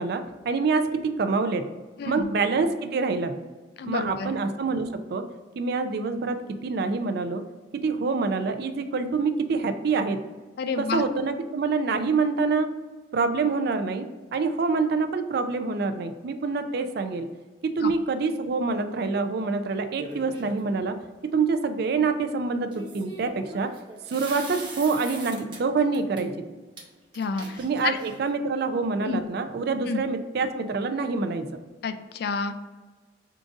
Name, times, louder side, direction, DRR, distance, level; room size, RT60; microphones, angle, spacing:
voice 1, 0.0-1.7 2.1-3.4 3.9-5.2 5.6-7.4 7.7-10.2 10.8-12.7 13.1-17.3 17.6-21.0 21.2-23.7 24.1-26.5 27.6-31.5, right 4 dB, 60° right, 8 dB, 0.4 m, -26 dB
voice 2, 2.0-2.3 3.8-4.3 10.6-11.0 17.8-17.9 27.2-27.6 27.8-28.0 29.1-29.3 29.9-30.0 31.8-32.5, left 4 dB, 60° left, 9 dB, 0.3 m, -29 dB
sound 1, 20.0-20.7 22.7-25.6 25.9-26.2 26.8-26.9 27.1-28.3, right 2 dB, 25° right, 0.8 m, -41 dB
3.8 x 2.5 x 4.7 m, 1.3 s
head